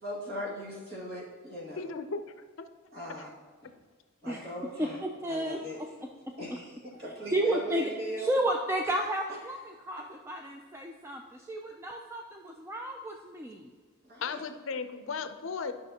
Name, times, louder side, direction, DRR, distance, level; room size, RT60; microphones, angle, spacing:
voice 1, 0.0-1.8 2.9-3.3 3.6-3.7 4.2-5.0 5.3-5.8 6.4-8.4 14.0-14.4, equal, 50° right, -4 dB, 2.0 m, -39 dB
voice 2, 1.8-2.2 2.6-2.7 3.2-3.3 14.2-15.7, left 5 dB, 65° left, 9 dB, 0.5 m, -35 dB
voice 3, 4.8-6.6 7.0-7.9 8.2-13.7, right 1 dB, 10° right, 2 dB, 0.4 m, -33 dB
11.5 x 6.0 x 2.8 m, 1.5 s
head